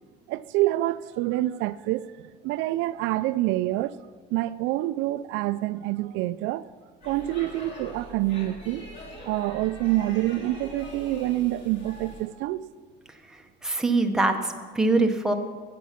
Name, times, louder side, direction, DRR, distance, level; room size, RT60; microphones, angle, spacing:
voice 1, 0.3-2.1 2.4-4.0 4.3-6.6 7.0-8.9 9.3-12.6, right 16 dB, 85° right, 0.4 m, -27 dB
Speech / Shout / Subway metro underground, 7.0-12.3, left 1 dB, 35° left, 2.7 m, -43 dB
voice 2, 13.6-15.3, right 2 dB, 5° right, 0.7 m, -23 dB
14.0 x 8.4 x 5.8 m
cardioid pair, 170°, 19 cm